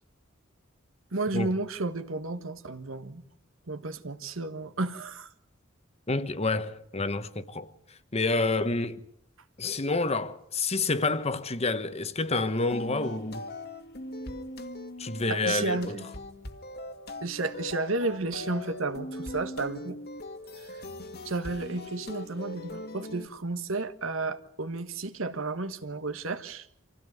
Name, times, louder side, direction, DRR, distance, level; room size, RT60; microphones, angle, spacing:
voice 1, 1.1-3.2 3.7-5.3 15.3-16.0 17.2-20.0 20.6-20.8 21.2-26.7, right 3 dB, 75° right, 1.5 m, -32 dB
voice 2, 6.1-9.0 9.6-13.5 15.0-16.0, left 3 dB, 30° left, 1.2 m, -29 dB
sound 1, 12.7-23.3, left 1 dB, 50° left, 1.9 m, -40 dB
26.5 x 16.0 x 9.5 m
head